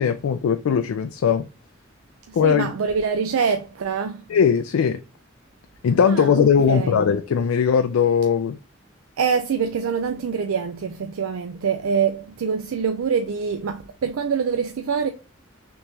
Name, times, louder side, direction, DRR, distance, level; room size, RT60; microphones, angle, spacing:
voice 1, 0.0-1.5 2.3-2.7 4.3-5.0 5.8-8.6, left 7 dB, 85° left, 0.3 m, -19 dB
voice 2, 2.3-4.2 6.1-7.0 9.2-15.1, right 6 dB, 85° right, 0.4 m, -25 dB
3.5 x 3.0 x 2.7 m
head